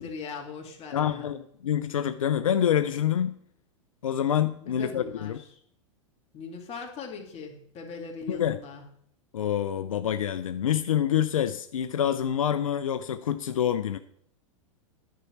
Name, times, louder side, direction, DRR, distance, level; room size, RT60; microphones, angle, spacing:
voice 1, 0.0-1.4 4.6-5.5 6.3-8.8, left 5 dB, 35° left, 3 dB, 2.1 m, -40 dB
voice 2, 0.9-3.3 4.0-5.4 8.3-8.6 9.3-14.0, left 9 dB, 85° left, 11 dB, 0.5 m, -26 dB
10.5 x 4.5 x 5.9 m, 0.68 s
hypercardioid pair, 105°, 17 cm